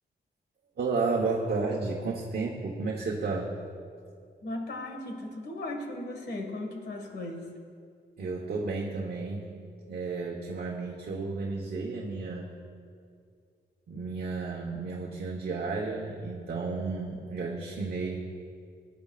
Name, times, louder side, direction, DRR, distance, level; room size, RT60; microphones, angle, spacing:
voice 1, 0.8-3.5 8.2-9.4 9.9-12.5 13.9-18.2, right 4 dB, 65° right, -2 dB, 1.2 m, -32 dB
voice 2, 4.4-7.5, left 1 dB, 70° left, 2 dB, 1.9 m, -37 dB
22.5 x 10.5 x 2.5 m, 2.3 s
wide cardioid pair, 160°, 18 cm